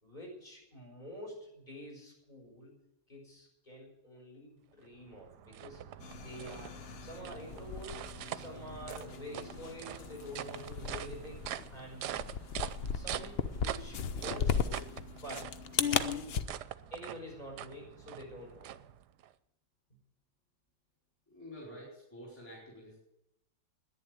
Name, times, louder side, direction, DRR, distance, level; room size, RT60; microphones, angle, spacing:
voice 1, 0.0-2.7 3.1-5.8 6.2-12.1 12.9-14.9 15.2-15.5 15.8-16.4 16.9-18.8, equal, 25° left, 0 dB, 5.4 m, -48 dB
sound 1, 4.8-19.3, right 11 dB, 75° right, 1.2 m, -44 dB
sound 2, 6.0-16.4, left 7 dB, 60° left, 0.6 m, -37 dB
voice 2, 21.3-23.0, equal, 5° left, -6 dB, 4.4 m, -49 dB
11.0 x 10.0 x 9.3 m, 0.83 s
omnidirectional pair, 1.8 m